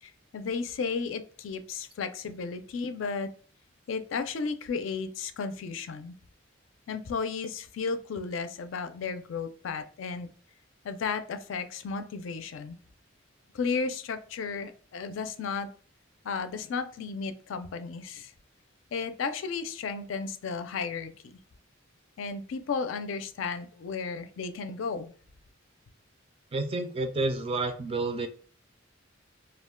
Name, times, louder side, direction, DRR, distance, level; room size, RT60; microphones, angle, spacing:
voice 1, 0.0-3.3 3.9-6.2 6.9-10.3 10.8-12.8 13.5-15.7 16.2-18.3 18.9-21.4 22.2-25.1, left 5 dB, 70° left, 9 dB, 0.4 m, -34 dB
voice 2, 26.5-28.3, right 2 dB, 30° right, 7 dB, 0.4 m, -29 dB
2.4 x 2.1 x 3.6 m, 0.43 s
head